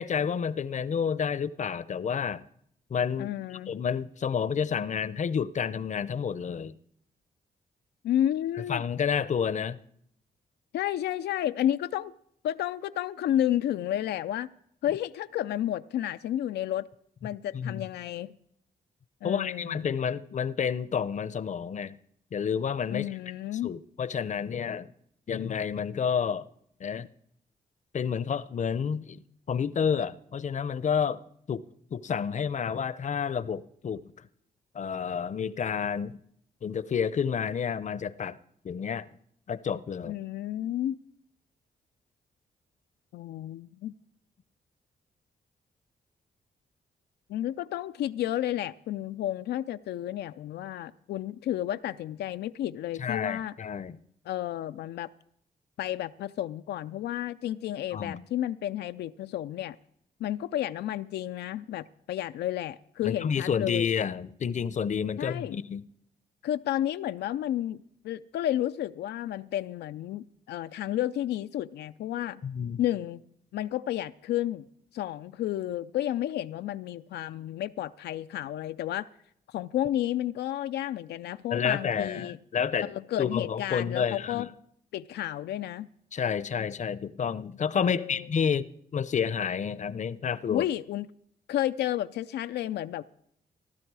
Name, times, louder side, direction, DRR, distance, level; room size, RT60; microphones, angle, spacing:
voice 1, 0.0-2.4 2.9-3.3 3.7-6.7 8.7-9.8 17.5-17.8 19.2-22.0 22.3-23.1 23.6-24.9 25.3-26.4 26.8-27.1 27.9-31.2 31.5-31.6 31.9-34.0 34.7-36.2 36.6-38.4 38.6-39.1 39.5-40.1 53.0-54.0 57.9-58.2 63.0-65.8 72.4-72.8 81.5-84.5 86.1-90.7, left 7 dB, 45° left, 0.6 m, -30 dB
voice 2, 3.2-3.7 8.0-8.8 10.7-12.1 12.4-14.5 14.8-16.9 17.2-18.3 19.2-19.9 22.9-23.7 40.1-41.0 43.1-43.9 47.3-53.5 54.3-55.1 55.8-59.8 60.2-63.9 65.2-65.6 66.4-72.4 72.8-73.2 73.5-74.7 74.9-79.1 79.5-82.4 82.9-84.5 84.9-85.9 87.8-88.3 90.5-91.1 91.5-93.0, left 12 dB, 85° left, 0.4 m, -31 dB
15.5 x 12.0 x 4.7 m
cardioid pair, 65°, 17 cm